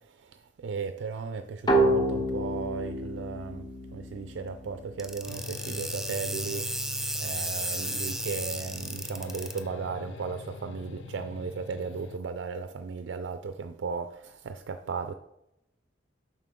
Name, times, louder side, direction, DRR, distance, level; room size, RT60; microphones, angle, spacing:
voice 1, 0.1-6.7 7.2-15.1, right 5 dB, 85° right, 9 dB, 0.4 m, -36 dB
sound 1, 1.7-5.2, right 1 dB, 25° left, 0.9 m, -28 dB
sound 2, 5.0-9.6, right 1 dB, 5° right, 0.4 m, -34 dB
sound 3, 5.2-12.2, left 3 dB, 80° left, 0.5 m, -43 dB
7.4 x 5.2 x 3.6 m, 0.84 s
head